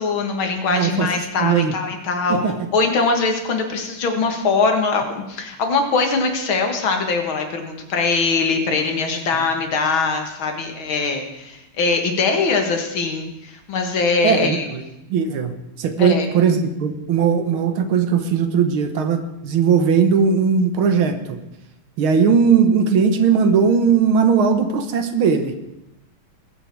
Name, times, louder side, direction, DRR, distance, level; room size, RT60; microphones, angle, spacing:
voice 1, 0.0-2.4 2.7-14.7 16.0-16.3, left 4 dB, 70° left, 4 dB, 2.5 m, -22 dB
voice 2, 0.7-1.1 1.4-1.7 2.3-2.5 14.2-14.8 15.1-21.4 22.0-25.5, right 6 dB, 75° right, 9 dB, 1.9 m, -18 dB
20.5 x 8.5 x 4.7 m, 0.91 s
omnidirectional pair, 2.4 m